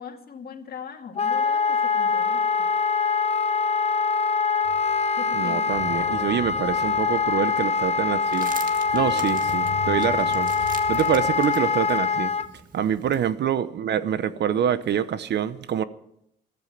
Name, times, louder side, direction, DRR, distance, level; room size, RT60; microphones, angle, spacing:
voice 1, 0.0-2.7 5.2-5.9 8.9-9.2 10.9-11.1, left 6 dB, 50° left, 2.2 m, -40 dB
Wind instrument woodwind instrument, 1.2-12.5, left 5 dB, 30° left, 0.9 m, -24 dB
sound 1, 4.6-5.1 5.4-11.3, left 8 dB, 90° left, 1.6 m, -40 dB
voice 2, 5.3-8.5 8.9-12.3 12.7-15.8, right 9 dB, 60° right, 0.9 m, -26 dB
sound 2, 8.2-13.3, right 5 dB, 45° right, 1.9 m, -43 dB
14.5 x 13.5 x 5.9 m
cardioid pair, 90°, 20 cm